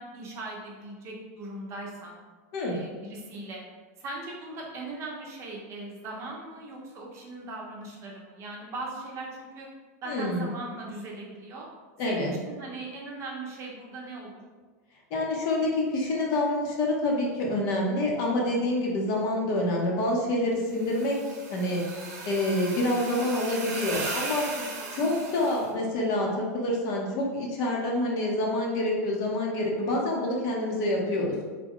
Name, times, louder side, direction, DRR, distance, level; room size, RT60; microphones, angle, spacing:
voice 1, 0.0-2.2 2.7-3.6 4.0-9.7 10.0-11.7 12.1-14.3 24.5-25.2, right 2 dB, 35° right, -2 dB, 0.7 m, -39 dB
voice 2, 10.1-10.5 12.0-12.3 15.1-21.8 22.3-24.4 24.9-31.3, left 1 dB, 45° left, -1 dB, 0.8 m, -27 dB
sound 1, 20.7-25.7, right 3 dB, 85° right, 0.8 m, -37 dB
3.6 x 2.2 x 3.6 m, 1.4 s
supercardioid pair, 145°, 9 cm